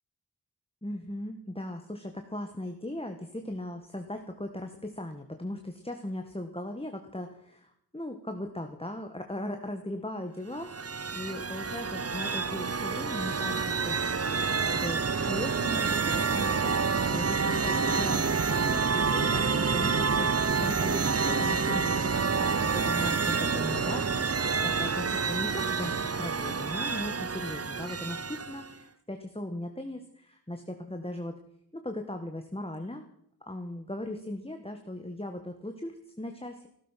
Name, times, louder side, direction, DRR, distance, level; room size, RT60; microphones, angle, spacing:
voice 1, 0.8-10.7 11.1-25.9 26.2-31.4 31.7-33.0 33.5-36.7, left 1 dB, 15° left, 5 dB, 1.5 m, -38 dB
sound 1, 10.5-28.7, right 5 dB, 40° right, 0.7 m, -28 dB
16.0 x 14.0 x 5.8 m, 0.73 s
wide cardioid pair, 40°, 39 cm